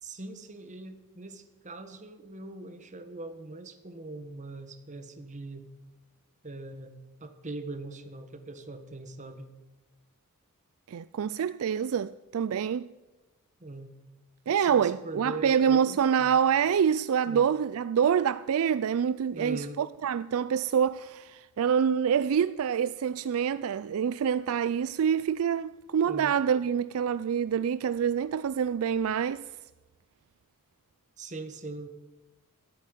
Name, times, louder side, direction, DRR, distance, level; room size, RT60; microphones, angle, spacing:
voice 1, 0.0-5.7 6.4-6.9 7.2-9.5 13.6-14.0 14.5-16.4 17.3-17.5 19.3-19.8 26.0-26.4 31.2-31.9, right 2 dB, 35° right, 1.4 m, -41 dB
voice 2, 10.9-12.9 14.5-29.5, right 7 dB, 65° right, 0.4 m, -26 dB
14.5 x 8.6 x 9.0 m
head